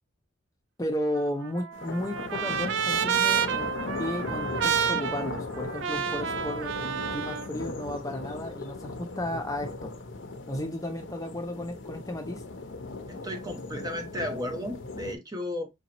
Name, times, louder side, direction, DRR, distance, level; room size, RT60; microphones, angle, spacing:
voice 1, 0.8-3.7 4.0-9.9 10.5-12.4, left 1 dB, 15° left, 0.6 m, -34 dB
Trumpet, 1.1-7.5, right 8 dB, 70° right, 0.4 m, -29 dB
sound 1, 1.7-15.2, left 3 dB, 70° left, 0.7 m, -38 dB
voice 2, 13.1-15.7, left 1 dB, 20° right, 0.7 m, -34 dB
5.0 x 2.8 x 2.9 m
head